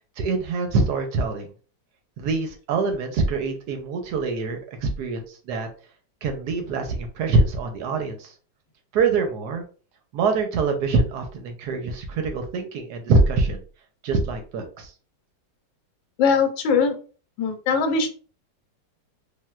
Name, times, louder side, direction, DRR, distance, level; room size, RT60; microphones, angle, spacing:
voice 1, 0.2-1.5 2.2-5.7 6.2-8.3 8.9-9.6 10.1-13.6 14.0-14.9, right 3 dB, 70° right, 5 dB, 1.0 m, -24 dB
voice 2, 16.2-17.0 17.4-18.1, left 5 dB, 85° left, 6 dB, 1.3 m, -21 dB
3.4 x 2.5 x 2.2 m, 0.38 s
omnidirectional pair, 2.1 m